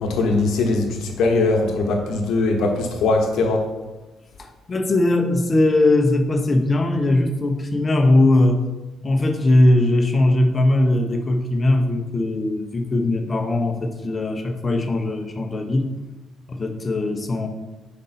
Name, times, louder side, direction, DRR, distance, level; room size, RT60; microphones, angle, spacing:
voice 1, 0.0-3.6, left 3 dB, 80° left, 3 dB, 1.1 m, -20 dB
voice 2, 4.4-8.6 9.0-15.9 16.5-17.5, left 1 dB, 30° left, 5 dB, 0.9 m, -19 dB
5.3 x 5.1 x 4.2 m, 1.1 s
cardioid pair, 90°, 0 cm